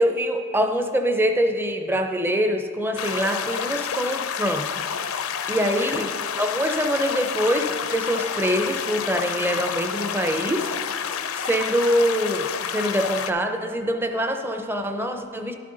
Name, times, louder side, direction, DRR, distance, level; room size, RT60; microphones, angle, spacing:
voice 1, 0.0-4.8 5.1-10.7 11.3-15.5, equal, 10° right, 6 dB, 0.5 m, -24 dB
sound 1, 3.0-13.3, left 7 dB, 75° left, 0.5 m, -29 dB
11.5 x 7.6 x 3.8 m, 2.1 s
head